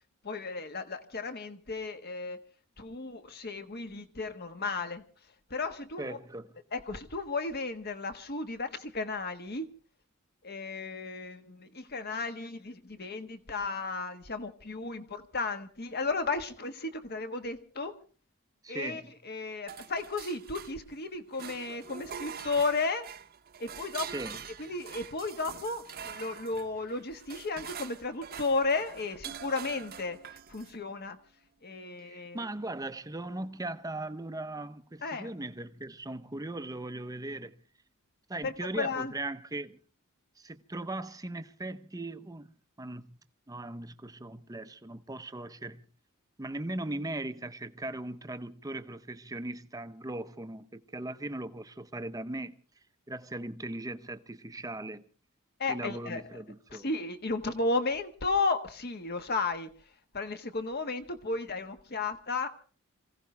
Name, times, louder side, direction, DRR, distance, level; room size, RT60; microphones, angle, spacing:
voice 1, 0.2-2.4 2.8-5.0 5.5-6.2 6.7-9.7 10.4-17.9 18.7-23.1 23.6-24.1 24.6-30.2 30.5-31.2 31.6-32.5 35.0-35.3 38.4-39.1 55.6-56.2 56.7-59.7 60.1-62.5, left 3 dB, 50° left, 1.5 m, -34 dB
voice 2, 6.0-6.5 18.6-19.1 24.1-24.4 32.0-37.6 38.3-39.8 40.4-42.5 42.8-43.2 43.5-45.8 46.4-52.5 53.1-55.0 55.7-56.9, right 2 dB, 15° right, 0.7 m, -39 dB
sound 1, 19.7-21.0 21.3-30.8, right 7 dB, 45° right, 0.9 m, -45 dB
26.5 x 16.0 x 3.3 m
head